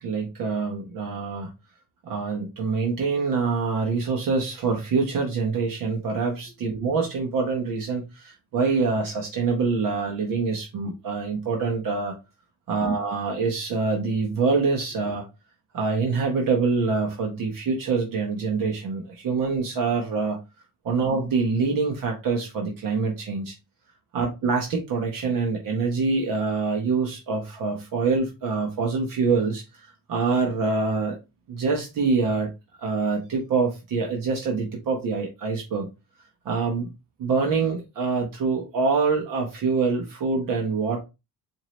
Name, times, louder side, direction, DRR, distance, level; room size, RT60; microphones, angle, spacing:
voice 1, 0.0-1.5 2.0-12.2 12.7-15.2 15.7-20.4 20.8-23.6 24.1-31.2 31.5-32.5 32.8-35.9 36.4-36.9 37.2-41.0, right 4 dB, 70° right, 1 dB, 1.1 m, -25 dB
4.5 x 2.8 x 3.1 m, 0.25 s
cardioid pair, 125°, 35 cm